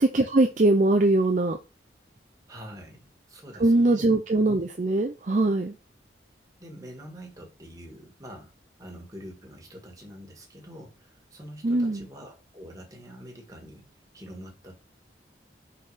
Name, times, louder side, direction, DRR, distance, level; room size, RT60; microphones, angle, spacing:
voice 1, 0.0-1.6 3.6-5.7 11.6-12.1, right 2 dB, 45° right, 0.6 m, -22 dB
voice 2, 2.5-4.1 6.6-8.5 8.8-13.9 14.1-14.8, equal, 20° right, 1.8 m, -45 dB
5.6 x 4.1 x 4.9 m
head